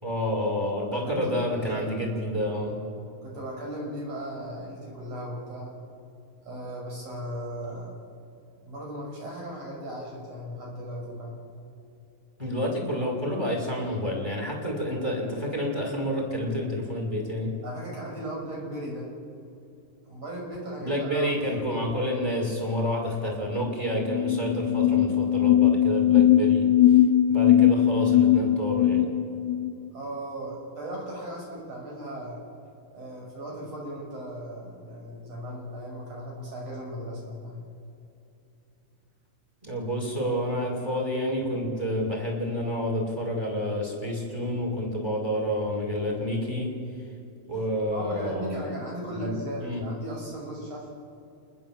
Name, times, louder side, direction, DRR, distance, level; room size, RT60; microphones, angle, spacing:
voice 1, 0.0-2.8 12.4-17.5 20.8-26.7 27.3-29.1 39.6-46.7 47.5-48.7 49.1-49.3 49.6-49.9, equal, 5° right, 0 dB, 5.2 m, -29 dB
voice 2, 0.9-1.9 3.2-5.7 6.4-8.0 8.6-11.4 17.6-19.1 20.1-21.3 21.7-21.8 29.9-32.4 32.9-37.6 47.9-50.9, right 1 dB, 45° right, -3 dB, 7.4 m, -37 dB
sound 1, 23.7-23.8 24.0-29.7, left 11 dB, 85° left, 2.5 m, -20 dB
29.5 x 20.0 x 7.6 m, 2.7 s
omnidirectional pair, 4.0 m